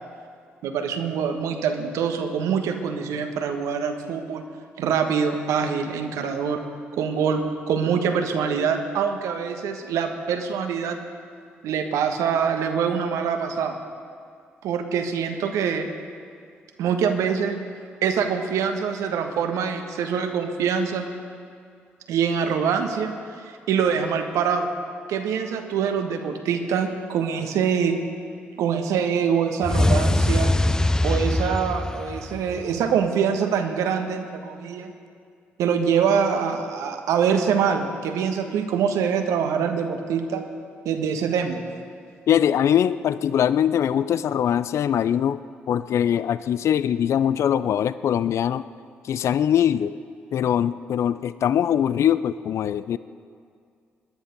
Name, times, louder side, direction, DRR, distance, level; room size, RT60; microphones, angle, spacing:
voice 1, 0.6-4.4 4.8-6.6 7.0-7.4 7.7-11.0 11.6-13.8 14.6-15.9 16.8-17.6 18.0-21.1 22.1-23.1 23.4-24.7 25.1-27.9 28.6-30.5 31.0-34.9 35.6-40.4 40.8-41.6, right 7 dB, 70° right, 6 dB, 1.3 m, -24 dB
sound 1, 29.6-32.8, left 1 dB, 10° left, 0.6 m, -22 dB
voice 2, 42.3-45.4 45.7-48.6 49.0-50.0 50.3-53.0, left 9 dB, 55° left, 15 dB, 0.4 m, -22 dB
20.0 x 10.5 x 5.3 m, 2.2 s
hypercardioid pair, 45°, 6 cm